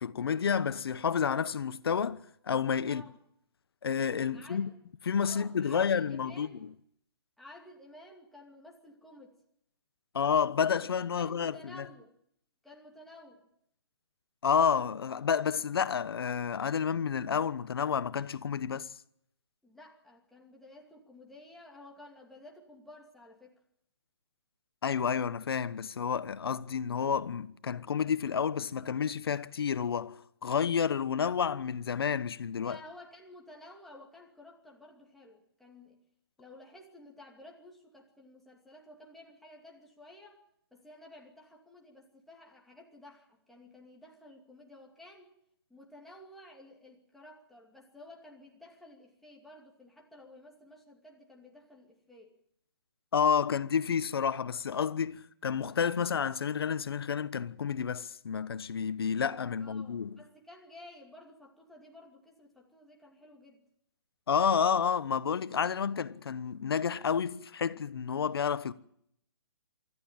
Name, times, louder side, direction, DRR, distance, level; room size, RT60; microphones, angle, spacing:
voice 1, 0.0-2.2 2.5-3.0 3.8-4.7 5.0-6.5 10.1-11.9 14.4-18.9 24.8-32.8 53.1-60.2 64.3-68.7, left 7 dB, 65° left, 1.1 m, -30 dB
voice 2, 2.8-3.2 4.3-4.7 5.2-6.6 7.4-9.4 10.8-10.9 11.1-12.1 12.6-13.5 19.6-23.6 32.6-36.0 36.4-40.4 40.7-45.3 45.7-52.3 59.6-63.6, left 1 dB, ahead, 2.6 m, -53 dB
24.5 x 14.0 x 9.0 m
hypercardioid pair, 160°, 13 cm